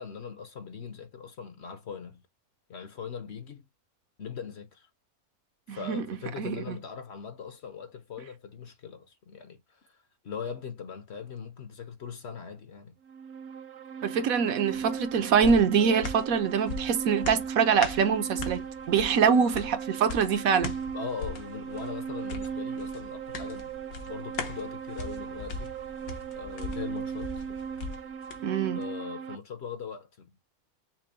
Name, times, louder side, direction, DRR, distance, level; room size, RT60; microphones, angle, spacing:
voice 1, 0.0-2.2 2.7-3.6 4.2-4.9 5.7-10.0 10.2-12.9 20.9-23.7 24.1-25.7 26.3-27.5 28.8-30.3, left 6 dB, 55° left, 1.0 m, -40 dB
voice 2, 5.7-6.0 6.4-6.8 14.0-20.7 28.4-28.8, right 6 dB, 70° right, 1.2 m, -24 dB
sound 1, 13.1-29.4, right 7 dB, 55° right, 0.9 m, -37 dB
sound 2, 14.7-28.4 28.8-28.9, left 3 dB, 75° left, 1.5 m, -40 dB
6.0 x 2.1 x 4.2 m
omnidirectional pair, 1.5 m